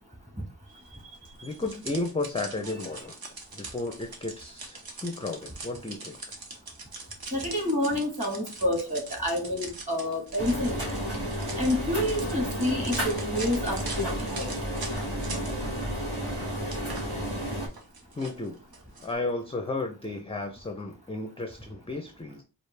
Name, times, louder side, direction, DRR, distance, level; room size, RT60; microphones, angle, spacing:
sound 1, 1.2-15.8 16.1-19.1, right 3 dB, 65° right, 1.0 m, -42 dB
voice 1, 1.4-3.2 3.5-6.2 18.2-18.6 19.0-22.4, left 2 dB, 15° left, 4 dB, 0.4 m, -33 dB
voice 2, 7.3-10.9 11.6-14.5, left 1 dB, 15° right, 1 dB, 1.5 m, -28 dB
sound 2, 10.4-17.7, equal, 35° right, 2.1 m, -32 dB
4.9 x 2.5 x 3.2 m, 0.31 s
wide cardioid pair, 130°, 39 cm